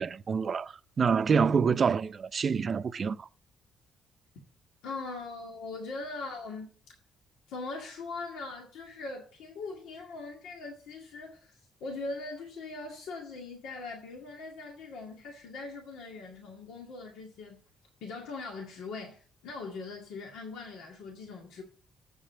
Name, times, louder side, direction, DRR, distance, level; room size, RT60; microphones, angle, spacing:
voice 1, 0.0-3.3, right 6 dB, 45° right, 0.5 m, -27 dB
voice 2, 4.8-6.7 7.5-17.6 18.0-21.6, left 3 dB, 90° left, 2.0 m, -41 dB
7.6 x 7.4 x 8.0 m
cardioid pair, 90°, 0 cm